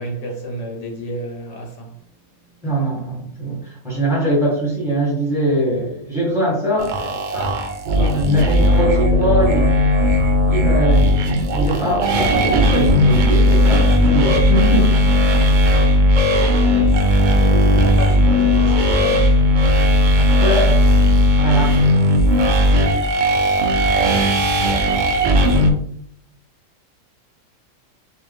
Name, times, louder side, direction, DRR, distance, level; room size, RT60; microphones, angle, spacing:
voice 1, 0.0-2.1 8.0-8.7 16.3-19.3, equal, 70° left, 1.1 m, -32 dB
voice 2, 2.6-7.5 7.9-9.7 10.4-15.3 20.4-20.7 21.4-21.8, right 1 dB, ahead, 1.4 m, -22 dB
sound 1, 6.8-25.7, equal, 60° right, 0.5 m, -16 dB
4.2 x 2.4 x 3.4 m
omnidirectional pair, 1.3 m